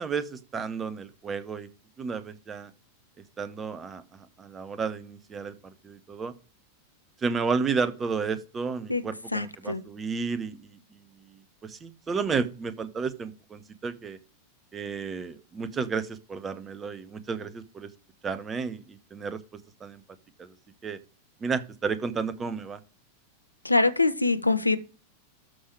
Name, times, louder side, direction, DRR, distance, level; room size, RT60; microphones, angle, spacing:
voice 1, 0.0-1.7 2.0-2.7 3.4-6.3 7.2-14.2 14.7-17.9 18.2-19.4 19.8-20.0 20.4-20.5 20.8-21.0 21.4-22.8, right 5 dB, 20° right, 1.1 m, -32 dB
voice 2, 9.3-9.8 23.6-24.8, left 3 dB, 85° left, 0.7 m, -24 dB
13.0 x 5.6 x 4.8 m
figure-of-eight pair, 90°, 0 cm